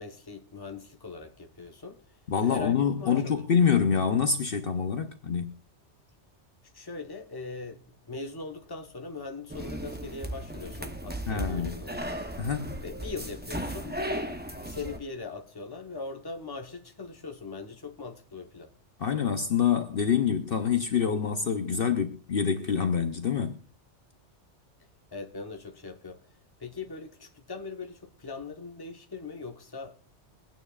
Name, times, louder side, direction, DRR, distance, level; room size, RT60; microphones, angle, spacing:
voice 1, 0.0-2.0 2.4-3.4 6.7-7.8 8.1-12.1 12.8-18.7 25.1-26.2 26.6-30.0, left 4 dB, 20° left, 1.0 m, -40 dB
voice 2, 2.3-5.5 11.3-11.8 12.4-12.8 19.0-23.6, left 7 dB, 55° left, 0.9 m, -26 dB
sound 1, 9.5-15.0, right 1 dB, 10° right, 0.7 m, -36 dB
23.0 x 9.2 x 2.4 m
omnidirectional pair, 1.2 m